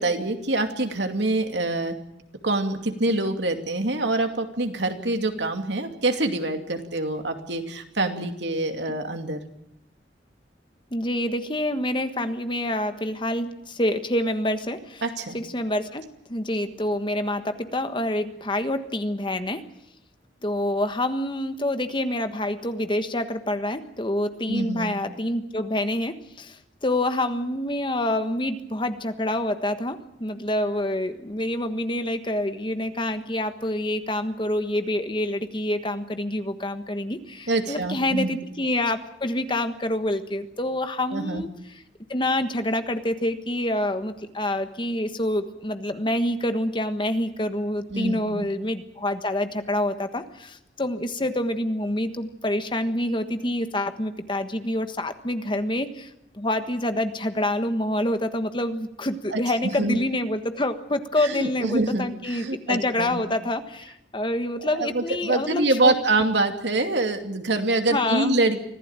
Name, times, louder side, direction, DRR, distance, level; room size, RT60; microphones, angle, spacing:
voice 1, 0.0-2.0 2.4-9.4 15.0-15.4 24.5-24.9 37.5-38.4 41.1-41.5 47.9-48.5 59.3-60.0 61.2-63.2 64.6-68.6, right 2 dB, 75° right, 5 dB, 2.6 m, -25 dB
voice 2, 10.9-15.0 15.3-16.0 16.3-19.6 20.4-26.6 26.8-41.5 42.1-56.1 56.3-65.9 67.9-68.4, left 1 dB, 25° left, 8 dB, 1.4 m, -27 dB
25.0 x 16.0 x 8.9 m, 0.80 s
head